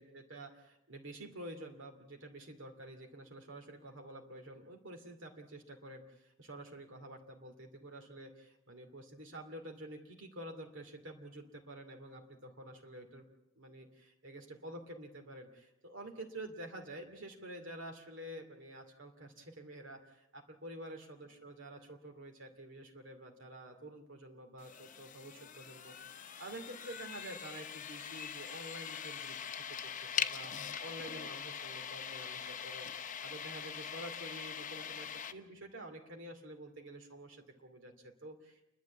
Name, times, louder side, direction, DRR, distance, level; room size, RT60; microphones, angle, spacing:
voice 1, 0.0-13.3 13.5-30.5 30.8-32.9 33.2-38.7, right 1 dB, 60° right, 3 dB, 2.6 m, -49 dB
sound 1, 24.6-35.3, left 8 dB, 35° left, 0.9 m, -42 dB
29.5 x 12.0 x 8.4 m, 0.88 s
head